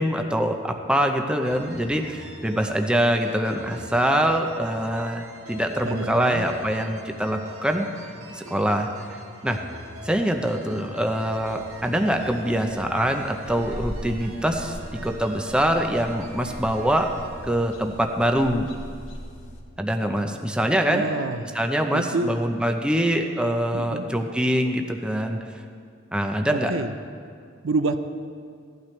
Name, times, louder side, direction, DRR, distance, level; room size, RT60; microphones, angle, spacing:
voice 1, 0.0-7.9 8.3-8.9 9.4-9.6 10.0-14.8 15.0-17.1 17.5-18.7 19.8-21.0 21.5-25.4 26.1-26.7, equal, 5° right, 4 dB, 0.7 m, -24 dB
sound 1, 1.5-17.5, equal, 90° right, 1.3 m, -42 dB
voice 2, 5.8-6.5 20.9-21.6 21.9-22.3 23.7-24.1 26.7-26.9 27.6-28.0, right 3 dB, 75° right, 9 dB, 0.6 m, -27 dB
sound 2, 11.3-19.6, equal, 70° left, 1.8 m, -40 dB
17.5 x 12.0 x 3.3 m, 2.2 s
head